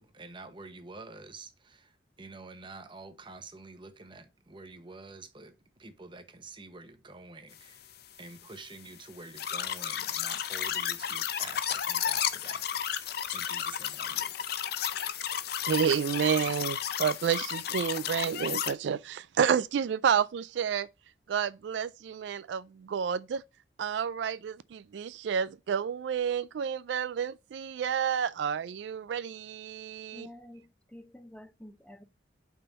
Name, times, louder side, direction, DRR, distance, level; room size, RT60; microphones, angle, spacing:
voice 1, 0.0-5.5 5.8-7.8 8.2-14.3, right 3 dB, 25° right, 0.9 m, -48 dB
sound 1, 9.4-18.7, left 9 dB, 60° left, 0.6 m, -32 dB
voice 2, 15.7-20.9 21.3-23.4 23.8-30.3, right 7 dB, 75° right, 0.3 m, -30 dB
voice 3, 30.1-32.0, left 1 dB, 5° left, 0.6 m, -49 dB
5.5 x 4.3 x 5.1 m
head